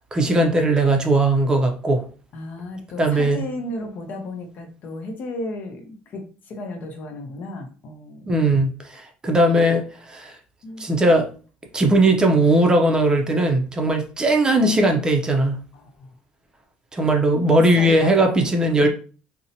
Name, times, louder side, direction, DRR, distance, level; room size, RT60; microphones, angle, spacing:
voice 1, 0.1-2.1 3.0-3.4 8.3-10.4 10.8-11.3 11.7-15.6 16.9-18.9, right 1 dB, 20° right, 0.5 m, -19 dB
voice 2, 2.3-8.6 10.6-10.9 15.7-16.1 17.8-18.5 18.8-18.9, left 2 dB, 55° left, 0.6 m, -34 dB
2.6 x 2.1 x 2.7 m
supercardioid pair, 100°, 4 cm